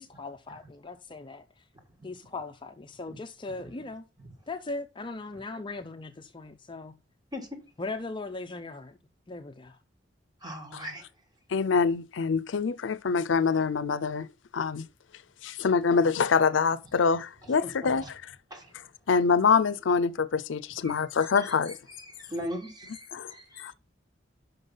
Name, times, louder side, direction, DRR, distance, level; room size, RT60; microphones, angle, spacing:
voice 1, 0.0-1.6 2.0-4.0 4.5-6.9 7.8-9.0 9.3-9.8, left 3 dB, 25° left, 0.5 m, -39 dB
voice 2, 10.4-11.0 17.6-17.9 18.5-18.7 20.8-21.0 21.4-21.5 22.1-23.6, equal, 20° right, 1.8 m, -39 dB
voice 3, 11.5-14.3 14.5-14.9 15.4-18.2 19.1-21.8 23.1-23.3 23.6-23.7, left 5 dB, 85° left, 0.5 m, -25 dB
5.9 x 5.4 x 5.4 m
head